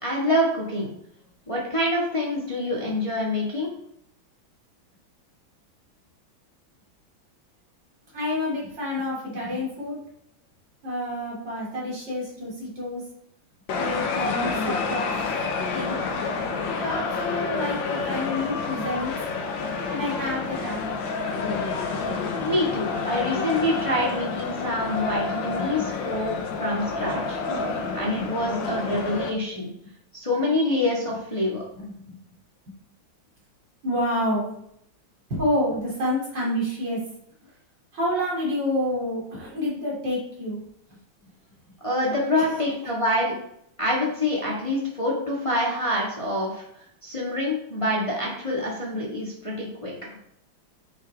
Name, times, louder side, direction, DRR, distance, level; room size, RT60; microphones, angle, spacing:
voice 1, 0.0-0.9 1.5-3.7 22.4-27.4 27.9-29.7 30.1-31.6 41.8-43.3 43.8-46.6 47.0-49.9, left 1 dB, 15° left, -4 dB, 1.8 m, -26 dB
voice 2, 8.1-10.0 10.8-13.0 13.7-15.2 15.7-16.0 16.7-19.2 19.9-21.1 25.8-25.9 28.2-28.3 32.0-32.2 33.8-34.5 35.3-37.0 37.4-37.5 37.9-40.6 42.4-42.6, left 1 dB, 60° right, -5 dB, 3.7 m, -28 dB
sound 1, 13.7-29.3, left 4 dB, 70° left, 1.7 m, -29 dB
9.5 x 5.9 x 3.6 m, 0.73 s
omnidirectional pair, 2.2 m